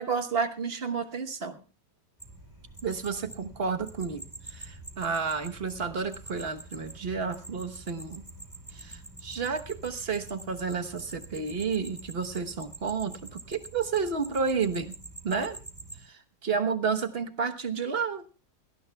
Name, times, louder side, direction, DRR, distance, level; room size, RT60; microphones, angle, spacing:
voice 1, 0.0-1.6 2.8-8.2 8.7-14.9 15.2-15.6 16.0-18.2, right 5 dB, 40° right, 8 dB, 1.2 m, -31 dB
sound 1, 2.2-16.0, right 2 dB, 10° right, 6.2 m, -46 dB
21.0 x 18.0 x 2.3 m, 0.35 s
omnidirectional pair, 1.8 m